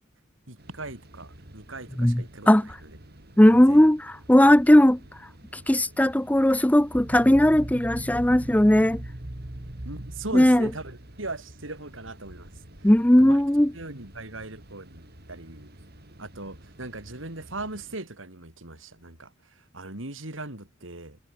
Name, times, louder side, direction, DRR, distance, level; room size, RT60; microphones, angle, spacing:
voice 1, 0.5-2.5 3.5-3.9 9.8-12.5 13.2-13.4 13.7-15.7 16.2-21.2, right 2 dB, 75° right, 4.7 m, -39 dB
sound 1, 0.6-18.0, right 1 dB, 55° right, 6.8 m, -50 dB
voice 2, 2.0-2.7 3.4-5.0 5.7-9.0 10.3-10.7 12.8-13.7, left 1 dB, 10° left, 0.7 m, -18 dB
sound 2, 6.9-11.6, right 1 dB, 40° right, 1.7 m, -39 dB
head